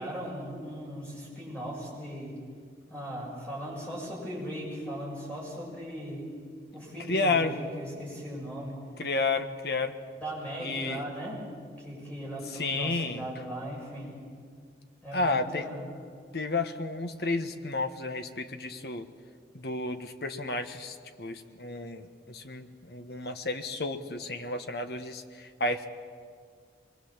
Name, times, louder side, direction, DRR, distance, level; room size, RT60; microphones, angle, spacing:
voice 1, 0.0-2.3 2.9-6.3 6.7-8.8 10.2-11.4 11.8-14.1 15.0-15.9, equal, 10° left, -4 dB, 7.1 m, -38 dB
voice 2, 7.1-7.5 9.0-9.9 10.6-11.0 12.5-13.2 15.1-15.7 16.3-19.0 19.5-25.9, left 3 dB, 65° left, 7 dB, 1.3 m, -31 dB
24.5 x 22.5 x 7.4 m, 2.1 s
head